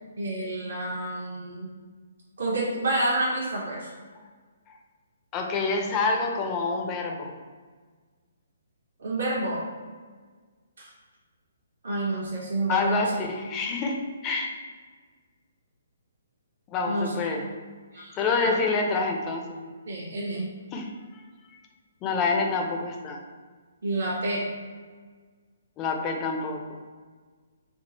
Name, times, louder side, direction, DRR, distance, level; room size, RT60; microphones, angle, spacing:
voice 1, 0.2-1.7 2.4-3.9 9.0-9.6 10.8-10.9 11.8-13.1 16.9-17.1 17.9-18.2 18.4-18.6 19.9-20.5 23.8-24.4, right 2 dB, 65° right, -4 dB, 0.8 m, -29 dB
voice 2, 5.3-7.3 12.7-14.6 16.7-17.4 18.2-19.6 20.7-21.2 22.0-23.2 25.8-26.8, left 4 dB, 25° left, 2 dB, 0.5 m, -27 dB
3.6 x 2.4 x 3.9 m, 1.5 s
figure-of-eight pair, 135°, 0 cm